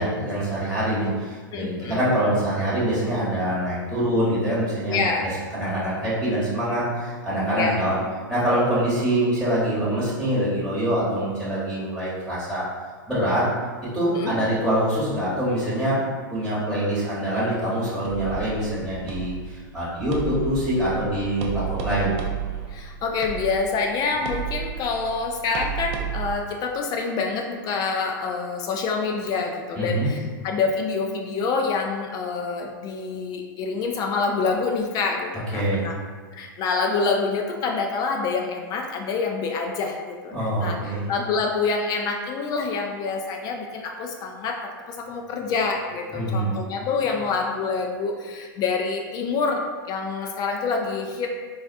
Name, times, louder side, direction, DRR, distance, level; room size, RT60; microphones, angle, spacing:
voice 1, 0.0-5.0 5.5-8.0 8.3-12.6 13.1-13.5 13.9-16.0 16.3-22.1 29.8-30.1 35.5-35.9 40.3-41.0 46.1-46.6, right 1 dB, ahead, -11 dB, 1.0 m, -24 dB
voice 2, 1.5-2.0 4.9-5.3 7.5-7.8 14.1-14.3 22.7-35.9 36.3-40.8 41.1-44.6 44.9-51.3, left 4 dB, 35° left, 2 dB, 0.3 m, -26 dB
sound 1, 18.0-26.3, right 9 dB, 50° right, 0.5 m, -33 dB
4.0 x 2.3 x 2.5 m, 1.5 s
hypercardioid pair, 110°, 12 cm